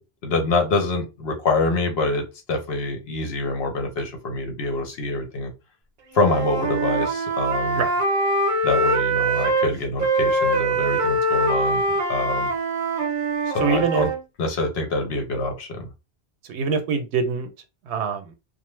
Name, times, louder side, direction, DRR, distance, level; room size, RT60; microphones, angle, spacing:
voice 1, 0.2-5.5 6.1-7.8 8.6-11.8 12.1-12.5 13.5-14.1 14.4-15.9, left 3 dB, 65° left, 4 dB, 1.0 m, -25 dB
Wind instrument woodwind instrument, 6.1-9.7 10.0-14.2, right 2 dB, 55° right, 0.7 m, -23 dB
voice 2, 13.6-14.1 16.5-17.5 17.9-18.3, right 5 dB, 90° right, 7 dB, 0.9 m, -24 dB
2.6 x 2.0 x 3.0 m, 0.27 s
omnidirectional pair, 1.1 m